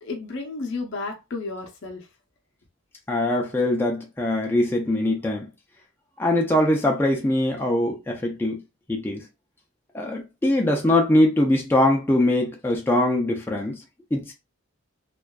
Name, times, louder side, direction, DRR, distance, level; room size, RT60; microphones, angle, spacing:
voice 1, 0.0-2.1, left 3 dB, 55° left, 0.5 m, -32 dB
voice 2, 3.1-5.5 6.2-8.6 9.0-9.2 9.9-13.8 14.1-14.3, left 1 dB, 10° left, 0.3 m, -22 dB
2.4 x 2.2 x 2.2 m
head